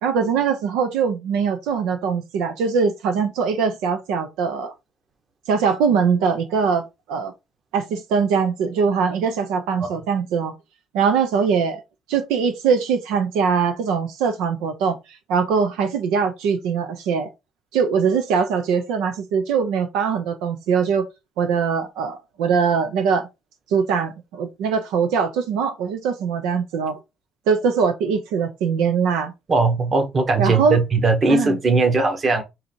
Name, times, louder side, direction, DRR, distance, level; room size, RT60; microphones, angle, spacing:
voice 1, 0.0-4.7 5.5-7.3 7.7-10.5 10.9-11.8 12.1-17.3 17.7-21.1 21.4-23.2 23.7-27.0 27.5-29.3 30.4-30.8 31.3-31.6, right 6 dB, 90° right, 0.7 m, -22 dB
voice 2, 29.5-32.4, right 3 dB, 40° right, 1.3 m, -19 dB
3.8 x 2.9 x 4.5 m
cardioid pair, 90°, 0 cm